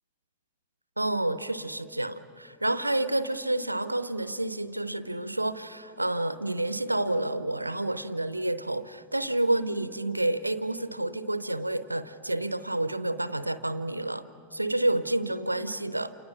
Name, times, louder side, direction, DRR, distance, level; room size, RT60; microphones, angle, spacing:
voice 1, 1.0-16.1, right 1 dB, 85° right, 14 dB, 0.7 m, -29 dB
29.0 x 27.5 x 6.0 m, 2.6 s
figure-of-eight pair, 90°, 0 cm